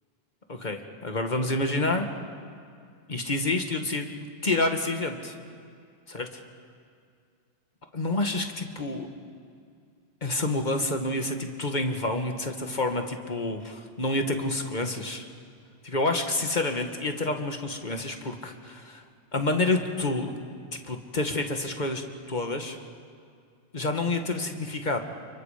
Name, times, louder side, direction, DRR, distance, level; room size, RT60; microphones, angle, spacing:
voice 1, 0.5-2.1 3.1-5.4 6.1-6.4 7.9-9.1 10.2-15.3 15.8-19.0 19.3-20.3 20.7-22.8 23.7-25.0, left 2 dB, 45° left, 5 dB, 1.9 m, -28 dB
30.0 x 29.0 x 5.1 m, 2.3 s
omnidirectional pair, 1.1 m